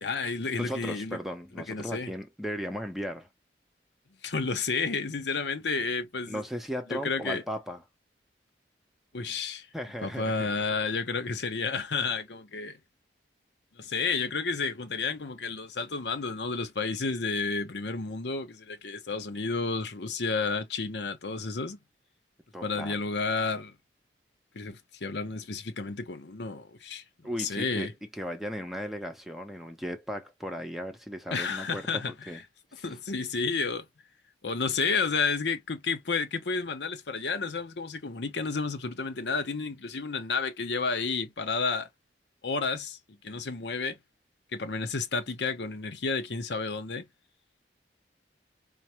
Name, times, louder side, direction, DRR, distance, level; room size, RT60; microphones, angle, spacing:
voice 1, 0.0-1.2 1.7-2.1 4.2-6.4 6.9-7.4 9.1-9.7 10.0-12.8 13.8-21.8 22.6-23.8 24.5-27.9 31.3-32.4 32.8-33.9 34.4-41.9 42.4-44.0 44.5-47.1, left 4 dB, 75° left, 0.8 m, -31 dB
voice 2, 0.6-3.3 6.3-7.8 9.7-10.5 22.5-23.0 27.2-32.4 32.8-32.9, equal, ahead, 0.7 m, -36 dB
4.5 x 2.1 x 3.0 m
head